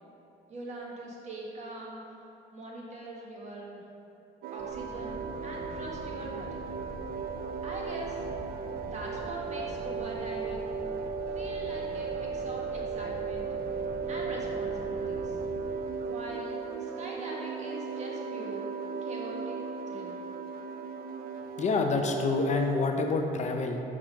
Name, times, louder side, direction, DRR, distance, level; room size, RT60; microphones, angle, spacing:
voice 1, 0.5-2.0 2.5-3.8 4.5-5.2 5.4-6.6 7.6-8.2 8.9-10.8 11.3-13.4 14.1-15.4 16.1-18.6 19.0-19.6 19.9-20.2, right 1 dB, 45° right, -2 dB, 1.7 m, -42 dB
sound 1, 4.4-22.8, right 5 dB, 65° right, 0.5 m, -36 dB
sound 2, 4.6-15.6, equal, 5° left, 1.7 m, -46 dB
voice 2, 21.6-23.8, left 3 dB, 45° left, 4 dB, 0.6 m, -27 dB
6.1 x 6.1 x 5.1 m, 3.0 s
cardioid pair, 110°, 17 cm